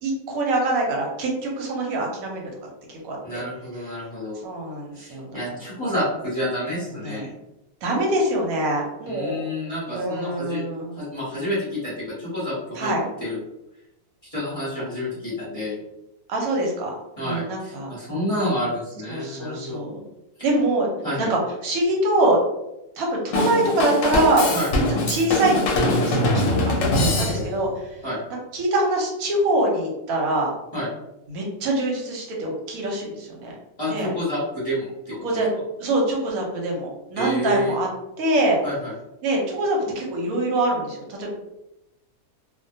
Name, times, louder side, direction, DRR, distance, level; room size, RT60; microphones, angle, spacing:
voice 1, 0.0-2.4 2.9-3.4 4.4-5.4 7.0-7.3 7.8-9.4 9.9-10.9 12.8-13.0 16.3-16.9 17.2-17.9 19.1-20.0 20.4-20.9 21.2-22.4 23.0-24.5 24.9-26.6 27.2-27.7 28.5-30.5 31.3-33.5 33.9-34.1 35.2-35.5 35.8-37.9 38.2-38.6 39.2-41.3, right 1 dB, 85° right, -1 dB, 1.1 m, -24 dB
voice 2, 3.2-4.4 4.9-7.3 9.1-12.9 13.2-13.4 14.2-15.8 17.2-19.8 21.0-21.3 24.5-24.7 27.0-27.5 28.0-28.2 30.7-30.9 33.8-35.4 37.1-37.7 38.6-38.9, left 1 dB, 30° left, -9 dB, 0.9 m, -29 dB
Drum kit / Drum, 23.3-27.7, left 1 dB, 70° left, 0.9 m, -22 dB
2.3 x 2.2 x 2.6 m, 0.92 s
omnidirectional pair, 1.5 m